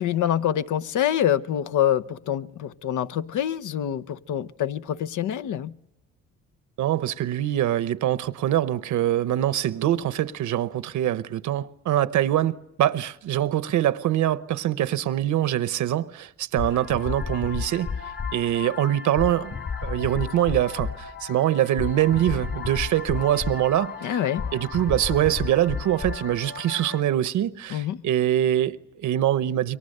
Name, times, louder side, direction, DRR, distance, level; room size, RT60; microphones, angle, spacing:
voice 1, 0.0-5.7 24.0-24.5 27.7-28.0, left 10 dB, 80° left, 0.8 m, -26 dB
voice 2, 6.8-19.6 19.8-24.2 24.5-29.8, right 12 dB, 75° right, 1.0 m, -24 dB
sound 1, 16.6-27.0, left 5 dB, 50° left, 3.4 m, -33 dB
29.0 x 23.5 x 6.7 m
cardioid pair, 90°, 30 cm